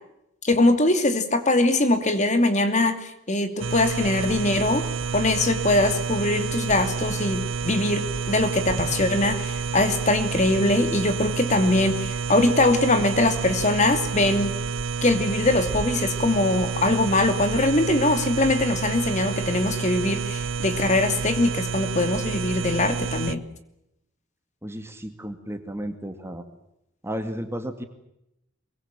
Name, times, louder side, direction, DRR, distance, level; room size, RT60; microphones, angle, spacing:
voice 1, 0.4-4.8 5.1-14.5 15.0-23.4, left 2 dB, 35° left, 8 dB, 2.6 m, -22 dB
sound 1, 3.6-23.4, right 5 dB, 70° right, 0.9 m, -29 dB
voice 2, 24.6-26.4 27.0-27.9, equal, 10° right, 7 dB, 2.3 m, -33 dB
24.0 x 23.5 x 7.5 m, 0.84 s
head